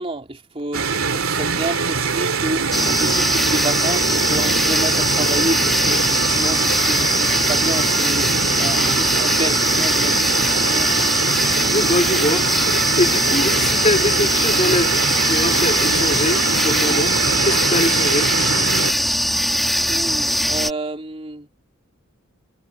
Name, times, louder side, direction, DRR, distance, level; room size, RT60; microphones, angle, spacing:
voice 1, 0.0-8.3 8.6-11.1 19.9-21.5, right 2 dB, 25° right, 3.4 m, -29 dB
sound 1, 0.7-18.9, right 5 dB, 70° right, 3.2 m, -23 dB
sound 2, 2.7-20.7, equal, ahead, 2.3 m, -21 dB
voice 2, 11.7-12.4 13.0-17.2 17.4-18.3, left 2 dB, 30° left, 4.3 m, -23 dB
head